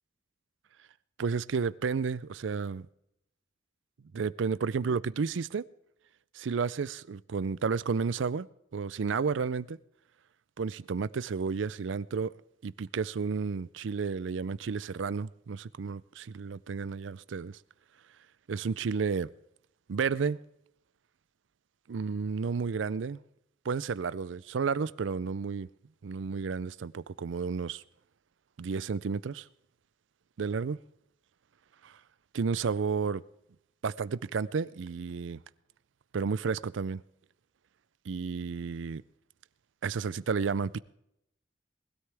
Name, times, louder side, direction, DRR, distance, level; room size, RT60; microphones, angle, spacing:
voice 1, 1.2-2.9 4.1-5.6 6.3-8.5 8.7-9.8 10.6-12.3 12.6-17.6 18.5-19.3 19.9-20.4 21.9-23.2 23.6-25.7 26.0-27.8 28.6-29.5 30.4-30.8 31.8-32.0 32.3-33.2 33.8-35.4 36.1-37.0 38.1-39.0 39.8-40.8, right 5 dB, 85° right, 0.4 m, -32 dB
20.0 x 13.0 x 3.4 m
head